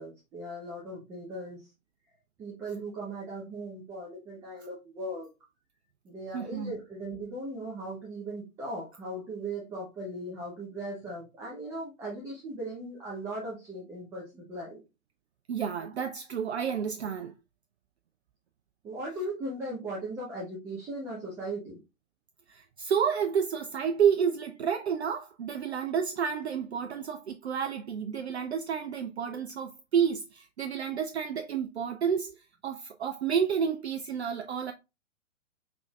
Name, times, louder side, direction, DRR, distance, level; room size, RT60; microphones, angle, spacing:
voice 1, 0.0-1.7 2.4-5.3 6.0-14.8 18.8-21.8, right 1 dB, 5° right, 0.6 m, -38 dB
voice 2, 6.3-6.7 15.5-17.3 22.5-34.7, right 7 dB, 55° right, 0.5 m, -30 dB
5.0 x 3.4 x 2.3 m
figure-of-eight pair, 120°, 41 cm